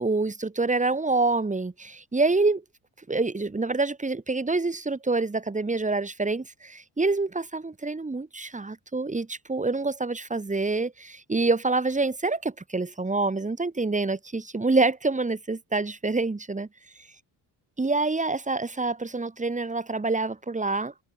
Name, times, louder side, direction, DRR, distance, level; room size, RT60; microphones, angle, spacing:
voice 1, 0.0-2.6 3.1-16.7 17.8-20.9, right 3 dB, 20° right, 4.2 m, -26 dB
cardioid pair, 120°, 40 cm